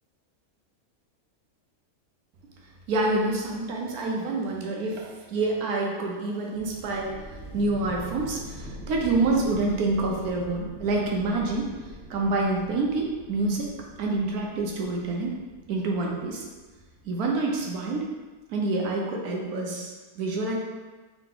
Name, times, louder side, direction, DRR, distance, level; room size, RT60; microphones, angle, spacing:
voice 1, 2.9-7.1 7.5-15.4 15.7-16.5 17.0-18.1 18.5-20.6, right 2 dB, 85° right, 0 dB, 1.2 m, -27 dB
sound 1, 6.5-18.0, right 1 dB, 65° right, 0.8 m, -44 dB
3.8 x 2.8 x 3.7 m, 1.3 s
omnidirectional pair, 1.6 m